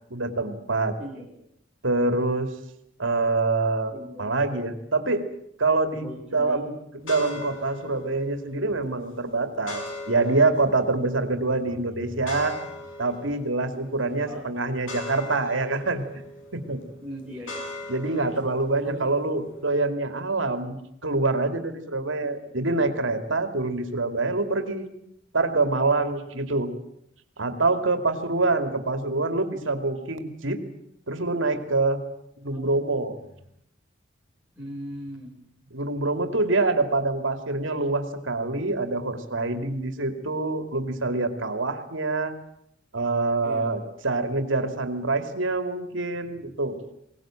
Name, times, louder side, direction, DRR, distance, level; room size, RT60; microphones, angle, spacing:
voice 1, 0.1-0.9 1.8-2.5 3.0-3.9 4.2-5.3 5.6-12.6 13.0-16.0 16.5-16.8 17.9-20.8 21.0-24.9 25.3-26.7 27.4-30.6 31.1-32.0 32.4-33.1 35.7-42.3 42.9-46.8, right 3 dB, 85° right, 8 dB, 2.5 m, -25 dB
voice 2, 3.9-4.7 6.0-6.6 11.7-12.1 14.2-14.5 17.0-17.6 18.8-19.0 22.4-22.5 32.5-32.7 34.6-35.4 43.4-43.7, equal, 5° right, -5 dB, 5.5 m, -39 dB
sound 1, 7.0-19.9, left 2 dB, 85° left, 6.3 m, -41 dB
22.0 x 19.0 x 9.0 m, 0.76 s
head